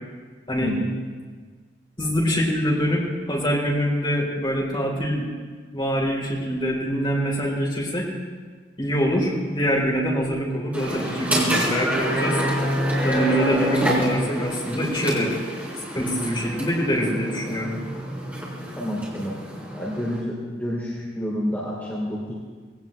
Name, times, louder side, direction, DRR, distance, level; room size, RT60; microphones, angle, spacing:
voice 1, 0.6-0.9 18.8-19.4 19.7-22.3, equal, 10° left, -7 dB, 3.0 m, -29 dB
voice 2, 2.0-5.2 5.7-8.1 8.8-12.4 13.0-15.3 15.9-17.7, equal, 25° left, -4 dB, 4.3 m, -24 dB
sound 1, 10.7-20.2, equal, 10° right, 4.3 m, -27 dB
20.5 x 17.5 x 3.4 m, 1.5 s
head